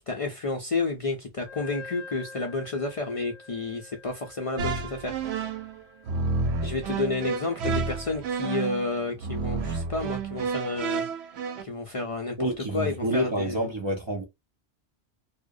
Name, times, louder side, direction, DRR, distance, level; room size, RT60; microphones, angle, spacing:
voice 1, 0.1-5.2 6.6-11.3 11.6-13.7, left 3 dB, 50° left, 0.4 m, -31 dB
Wind instrument woodwind instrument, 1.4-8.8, left 4 dB, 25° right, 1.0 m, -48 dB
sound 1, 4.6-11.6, right 4 dB, 85° right, 0.8 m, -30 dB
voice 2, 12.4-14.2, right 1 dB, 45° right, 0.4 m, -28 dB
2.3 x 2.1 x 2.5 m
omnidirectional pair, 1.1 m